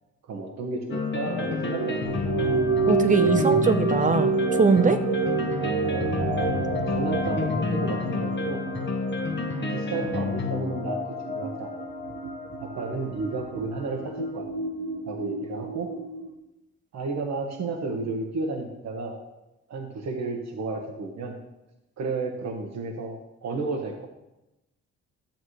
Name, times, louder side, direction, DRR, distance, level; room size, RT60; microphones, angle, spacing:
voice 1, 0.3-2.0 6.5-8.6 9.7-11.0 11.3-11.7 12.6-14.5 15.0-15.9 16.9-19.2 19.7-21.3 22.0-23.2 23.4-24.1, right 3 dB, 60° right, 2 dB, 1.3 m, -32 dB
sound 1, 0.9-13.8, left 3 dB, 40° left, 1.2 m, -29 dB
sound 2, 1.7-16.3, right 5 dB, 85° right, 1.0 m, -29 dB
voice 2, 2.9-5.0, right 4 dB, 25° right, 9 dB, 0.8 m, -22 dB
12.0 x 7.3 x 3.2 m, 0.93 s
cardioid pair, 90°, 30 cm